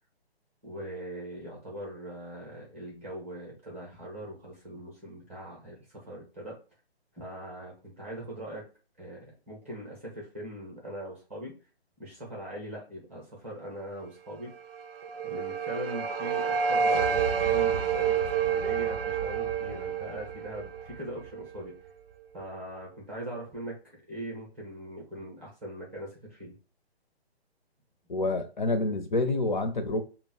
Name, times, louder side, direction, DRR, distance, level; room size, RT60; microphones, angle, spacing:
voice 1, 0.6-6.6 7.1-8.6 9.0-11.5 12.0-14.5 15.2-21.7 22.3-23.7 24.1-26.5, right 1 dB, 15° right, 0.6 m, -41 dB
sound 1, 14.7-21.7, right 7 dB, 60° right, 0.4 m, -29 dB
voice 2, 28.1-30.0, left 2 dB, 45° left, 0.5 m, -27 dB
2.2 x 2.0 x 3.6 m
hypercardioid pair, 165°, 32 cm